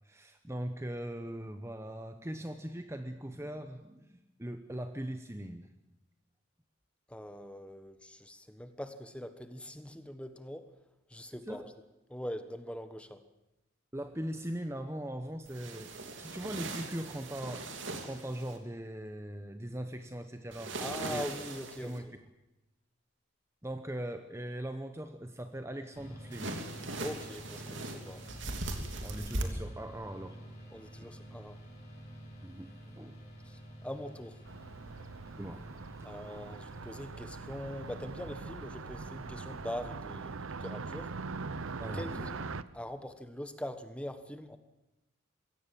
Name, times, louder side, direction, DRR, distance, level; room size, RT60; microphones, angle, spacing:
voice 1, 0.0-5.7 11.5-11.7 13.9-17.7 18.0-20.7 21.1-21.2 21.8-22.1 23.6-26.6 29.0-30.4 31.0-31.1 32.4-33.2 35.4-35.6 41.8-42.3, right 1 dB, 15° right, 8 dB, 0.9 m, -40 dB
voice 2, 7.1-10.7 11.1-11.7 12.1-13.2 20.8-22.1 27.0-28.2 30.7-31.6 33.4-34.4 36.0-41.1 41.9-44.6, equal, 5° left, 10 dB, 1.3 m, -42 dB
sound 1, 15.5-18.6 20.5-22.0 26.3-29.4, right 2 dB, 65° right, 3.0 m, -40 dB
sound 2, 25.9-39.7, equal, 35° left, 7.2 m, -50 dB
Car passing by, 34.5-42.6, right 4 dB, 80° right, 0.8 m, -42 dB
23.0 x 17.0 x 7.6 m, 0.96 s
head